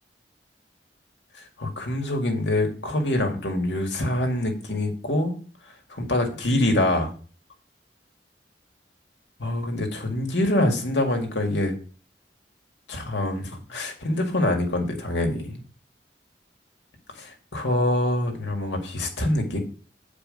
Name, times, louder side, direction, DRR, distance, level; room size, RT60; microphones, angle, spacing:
voice 1, 1.6-5.4 5.9-7.1 9.4-11.8 12.9-15.6 17.2-19.6, left 1 dB, 90° left, 3 dB, 2.0 m, -25 dB
9.3 x 4.9 x 5.2 m, 0.39 s
head